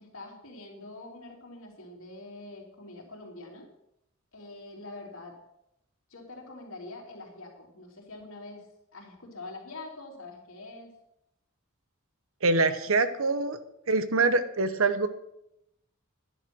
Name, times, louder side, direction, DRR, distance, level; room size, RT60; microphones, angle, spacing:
voice 1, 0.0-3.7 4.3-5.3 6.1-8.7 8.9-10.9, left 2 dB, 70° left, 0 dB, 3.5 m, -45 dB
voice 2, 12.4-13.6 13.9-15.1, right 3 dB, 75° right, 12 dB, 1.0 m, -24 dB
11.0 x 10.5 x 6.2 m, 0.81 s
head